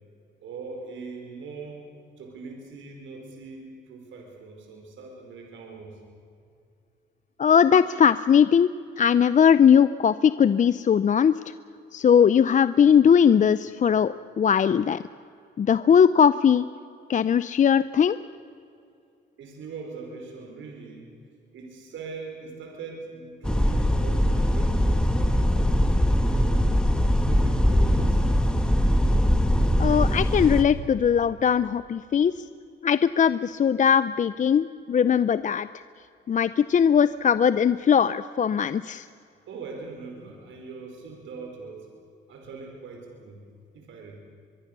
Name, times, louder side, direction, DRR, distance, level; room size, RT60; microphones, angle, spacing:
voice 1, 0.4-1.8 2.2-6.0 19.4-21.1 21.5-26.8 27.2-28.6 39.5-41.9 42.3-43.4 43.7-44.2, right 4 dB, 75° right, 1 dB, 5.0 m, -41 dB
voice 2, 7.4-11.4 11.9-15.0 15.6-16.7 17.1-18.2 29.8-32.3 32.8-35.7 36.3-39.1, left 7 dB, 40° left, 15 dB, 0.6 m, -20 dB
sound 1, 23.4-30.6, equal, 5° left, 1.9 m, -21 dB
23.5 x 23.0 x 6.8 m, 2.5 s
cardioid pair, 90°, 20 cm